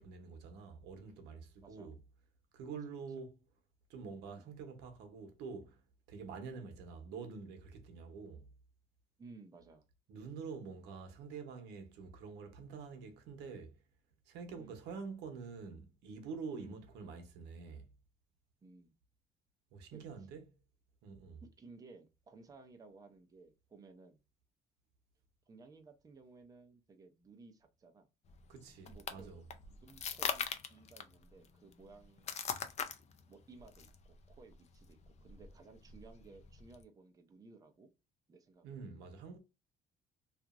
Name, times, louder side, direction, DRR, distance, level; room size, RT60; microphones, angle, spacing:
voice 1, 0.0-2.0 2.5-3.4 3.9-5.8 6.1-8.5 10.1-13.8 14.3-17.9 19.7-20.4 21.0-21.4 28.5-29.4 38.6-39.4, right 5 dB, 90° right, 0.8 m, -47 dB
voice 2, 1.6-1.9 4.3-4.5 9.2-9.9 14.6-14.8 16.5-16.8 18.6-18.9 19.9-20.0 21.4-24.2 25.5-28.1 28.9-29.4 29.7-32.4 33.3-37.9 38.3-38.9, right 3 dB, 20° right, 0.6 m, -57 dB
sound 1, 28.3-36.8, left 7 dB, 40° left, 0.5 m, -43 dB
2.8 x 2.4 x 2.4 m
cardioid pair, 110°, 17 cm